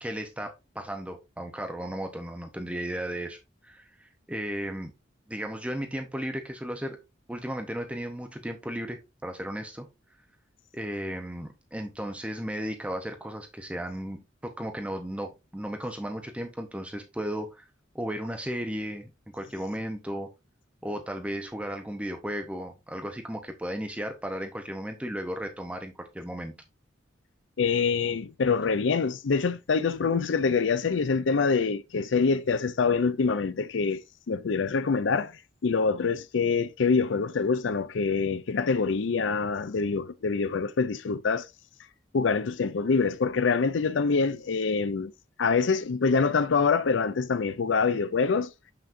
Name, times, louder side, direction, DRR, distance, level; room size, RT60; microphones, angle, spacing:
voice 1, 0.0-4.9 5.3-7.0 7.3-9.9 10.7-17.7 17.9-19.1 19.3-20.3 20.8-26.5, equal, 5° right, 0.7 m, -35 dB
voice 2, 27.6-34.0 34.3-35.3 35.6-41.5 42.1-45.1 45.4-48.5, left 5 dB, 80° left, 0.5 m, -25 dB
7.1 x 5.9 x 2.5 m
head